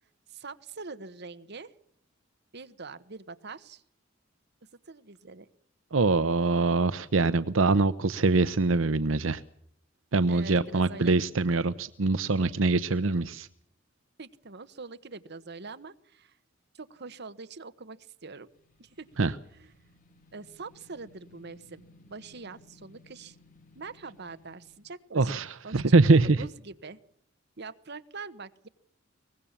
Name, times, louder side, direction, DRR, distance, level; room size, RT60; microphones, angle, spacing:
voice 1, 0.3-1.7 2.5-3.8 4.9-5.5 10.3-11.2 14.2-16.4 16.7-18.5 18.8-19.0 19.5-19.7 20.3-23.4 23.7-25.3 25.6-27.0 27.6-28.7, right 4 dB, 60° right, 12 dB, 1.3 m, -44 dB
voice 2, 5.9-9.4 10.1-13.5 19.2-19.3 25.1-26.4, right 3 dB, 85° right, 14 dB, 0.8 m, -24 dB
sound 1, 18.5-24.8, left 2 dB, 45° left, 2.8 m, -59 dB
23.0 x 20.0 x 7.3 m, 0.72 s
head